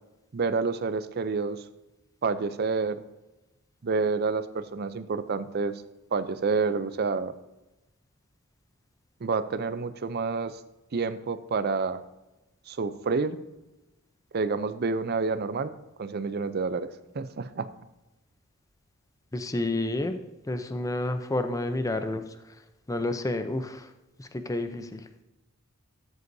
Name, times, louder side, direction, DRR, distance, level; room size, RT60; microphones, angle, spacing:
voice 1, 0.3-1.6 2.2-3.0 3.8-5.7 6.1-7.3 9.2-10.6 10.9-12.0 12.7-13.4 14.3-15.7 16.0-16.9 17.1-17.7, right 4 dB, 50° right, 13 dB, 0.5 m, -28 dB
voice 2, 19.3-20.2 20.5-22.2 22.9-23.9 24.2-25.0, left 2 dB, 15° left, 9 dB, 0.6 m, -29 dB
12.5 x 8.0 x 2.7 m, 1.0 s
head